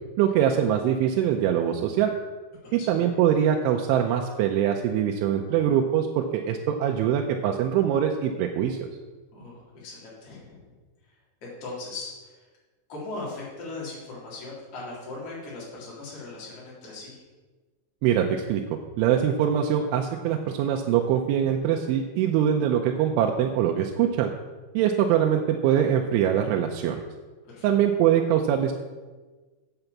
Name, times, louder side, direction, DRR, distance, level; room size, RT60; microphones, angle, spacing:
voice 1, 0.2-2.1 2.7-8.9 18.0-18.6 19.0-24.3 24.7-27.0 27.6-28.7, right 9 dB, 85° right, 3 dB, 3.0 m, -23 dB
voice 2, 2.7-3.1 9.3-10.8 11.4-12.3 12.9-17.2 27.4-27.7, left 2 dB, 35° left, -6 dB, 4.0 m, -39 dB
8.0 x 7.9 x 7.2 m, 1.3 s
omnidirectional pair, 5.5 m